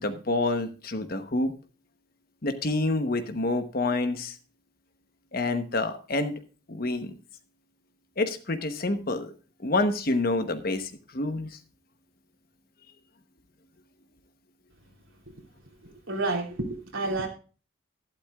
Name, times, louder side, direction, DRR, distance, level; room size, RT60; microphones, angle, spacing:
voice 1, 0.0-1.5 2.4-4.3 5.3-6.4 6.7-7.1 8.2-9.3 9.6-11.6, left 2 dB, 45° left, 1.0 m, -28 dB
voice 2, 15.8-17.3, right 2 dB, 75° right, 3.1 m, -30 dB
12.0 x 12.0 x 2.3 m
head